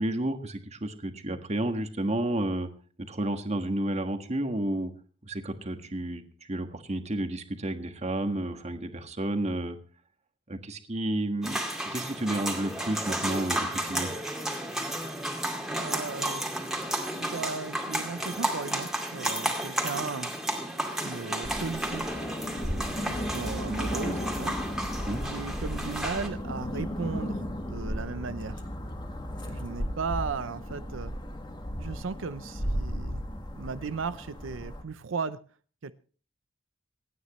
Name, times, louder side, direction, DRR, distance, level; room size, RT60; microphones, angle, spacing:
voice 1, 0.0-2.7 3.1-4.9 5.2-6.2 6.5-9.8 10.5-11.6 11.8-14.1 25.1-25.2, right 1 dB, 35° right, 7 dB, 1.5 m, -31 dB
sound 1, 11.4-26.3, right 1 dB, 5° right, 2.3 m, -33 dB
voice 2, 15.7-16.5 17.2-20.3 21.0-24.6 25.2-28.6 29.4-31.1 31.8-33.2 33.5-35.4 35.8-35.9, right 4 dB, 90° right, 12 dB, 0.6 m, -36 dB
sound 2, 21.4-34.8, equal, 25° left, 1.7 m, -35 dB
26.5 x 9.5 x 3.1 m, 0.40 s
head